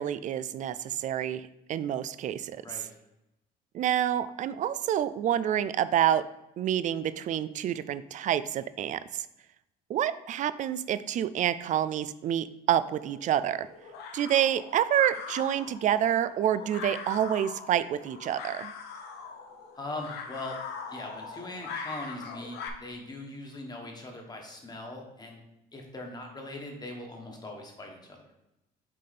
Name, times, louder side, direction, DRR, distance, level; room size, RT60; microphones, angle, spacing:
voice 1, 0.0-2.6 3.7-6.2 6.6-9.3 9.9-13.7 14.1-18.7, right 10 dB, 45° right, 15 dB, 0.4 m, -28 dB
sound 1, 12.8-22.7, left 5 dB, 80° left, 0.9 m, -42 dB
voice 2, 19.8-20.6 20.9-25.4 25.7-28.3, left 2 dB, 25° left, 1 dB, 1.4 m, -41 dB
6.2 x 4.1 x 4.2 m, 0.90 s
cardioid pair, 110°, 17 cm